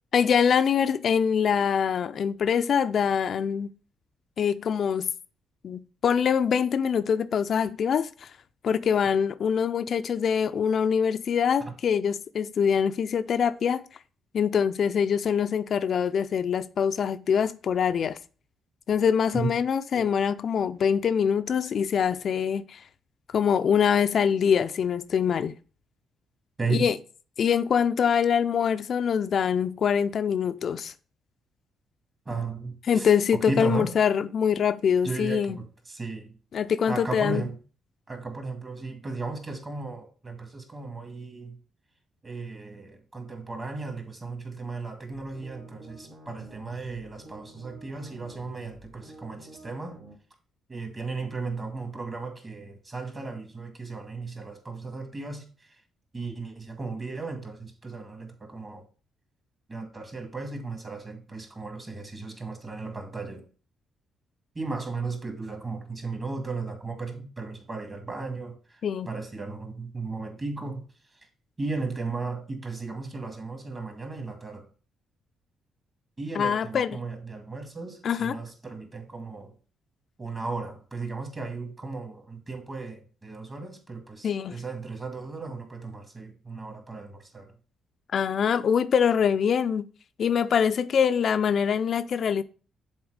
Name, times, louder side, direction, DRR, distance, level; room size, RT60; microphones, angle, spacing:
voice 1, 0.1-3.7 4.4-5.1 5.6-8.3 8.6-13.8 14.3-18.2 18.9-22.8 23.3-25.5 26.7-27.0 27.4-30.9 32.9-35.6 36.5-37.4 68.8-69.1 76.3-77.0 78.0-78.4 84.2-84.6 88.1-89.9 90.2-92.4, left 7 dB, 55° left, 0.4 m, -24 dB
voice 2, 32.3-33.1 33.5-33.9 35.0-36.3 36.9-37.6 38.1-41.6 42.2-50.0 50.7-55.4 56.1-58.8 59.7-63.4 64.6-68.6 69.1-70.8 71.6-74.7 76.2-79.5 80.2-87.5, right 3 dB, 30° right, 2.0 m, -35 dB
sound 1, 45.1-50.2, right 1 dB, 75° right, 2.2 m, -49 dB
7.1 x 3.9 x 5.0 m
cardioid pair, 90°, 0 cm